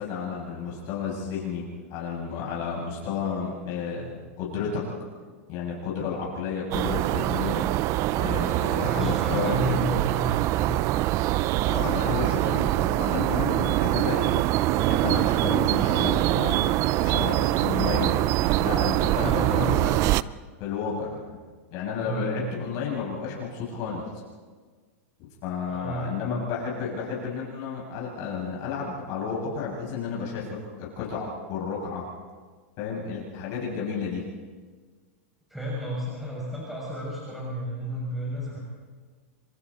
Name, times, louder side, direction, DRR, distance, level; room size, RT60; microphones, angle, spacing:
voice 1, 0.0-1.6 1.9-4.8 5.5-7.7 8.2-9.7 11.6-14.4 14.8-18.1 18.6-19.8 20.6-21.2 21.7-24.1 25.4-32.1 32.8-34.3, left 6 dB, 50° left, -4 dB, 7.2 m, -32 dB
sound 1, 6.7-20.2, right 16 dB, 40° right, 0.5 m, -24 dB
voice 2, 8.8-10.6 19.1-20.0 22.0-22.5 25.7-26.4 35.5-38.6, equal, 5° right, -6 dB, 7.0 m, -32 dB
30.0 x 25.0 x 4.3 m, 1.5 s
hypercardioid pair, 130°, 8 cm